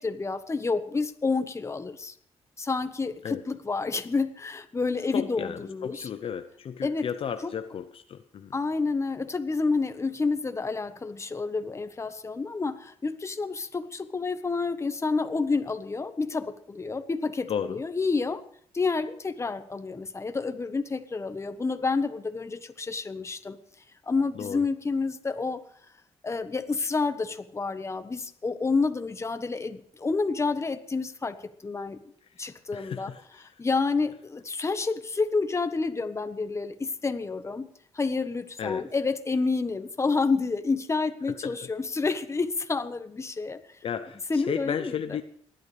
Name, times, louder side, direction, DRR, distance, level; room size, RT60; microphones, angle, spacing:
voice 1, 0.0-2.1 2.6-6.1 6.8-7.1 8.5-18.4 18.7-23.6 24.1-25.6 26.2-32.0 32.4-33.1 33.6-37.7 37.9-43.6 44.3-44.9, left 4 dB, 25° left, 10 dB, 1.2 m, -29 dB
voice 2, 5.1-8.5 17.5-17.8 24.3-24.7 32.4-33.6 38.6-38.9 41.3-41.7 43.8-45.2, left 8 dB, 60° left, 10 dB, 0.7 m, -34 dB
28.5 x 11.0 x 3.4 m, 0.63 s
cardioid pair, 95°, 11 cm